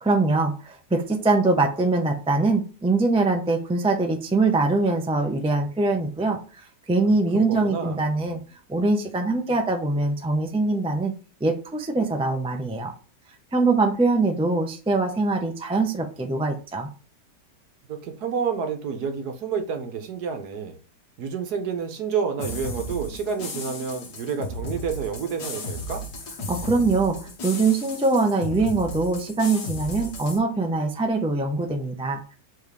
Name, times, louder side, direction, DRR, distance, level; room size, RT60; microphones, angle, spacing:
voice 1, 0.0-8.4 8.7-11.1 11.4-12.9 13.5-16.9 26.5-32.4, right 3 dB, 5° right, 4 dB, 0.4 m, -23 dB
voice 2, 7.3-8.0 17.9-20.8 21.2-26.0, right 6 dB, 65° right, 7 dB, 1.4 m, -29 dB
sound 1, 22.4-30.4, left 1 dB, 65° left, 1.9 m, -35 dB
7.2 x 4.1 x 3.3 m, 0.36 s
omnidirectional pair, 1.9 m